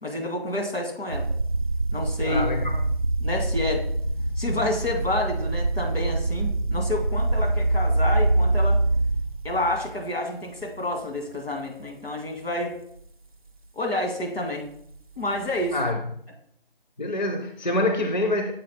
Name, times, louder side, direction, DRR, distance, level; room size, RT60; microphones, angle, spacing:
voice 1, 0.0-1.3 1.9-2.4 3.2-3.8 4.4-8.8 9.4-12.7 13.7-14.7 15.2-15.8, left 1 dB, 85° left, 2 dB, 2.6 m, -29 dB
sound 1, 1.1-9.9 10.6-11.0 11.6-11.7 15.2-15.9, right 2 dB, 40° right, 0.4 m, -25 dB
voice 2, 2.2-2.8 15.7-16.0 17.0-18.5, left 1 dB, 50° left, 4 dB, 0.6 m, -25 dB
7.4 x 4.0 x 4.6 m, 0.66 s
figure-of-eight pair, 170°, 30 cm